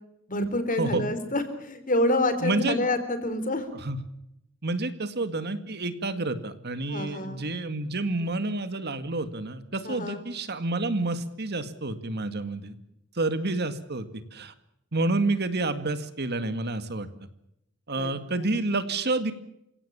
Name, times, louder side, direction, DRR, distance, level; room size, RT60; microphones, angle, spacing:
voice 1, 0.3-3.7 6.9-7.5 9.8-10.3 17.9-18.5, left 1 dB, 40° left, 11 dB, 4.0 m, -28 dB
voice 2, 2.4-2.9 3.7-4.0 4.6-12.8 13.1-14.5 14.9-17.3 17.9-19.3, right 2 dB, 55° right, 11 dB, 2.0 m, -29 dB
29.5 x 17.0 x 7.1 m, 0.81 s
head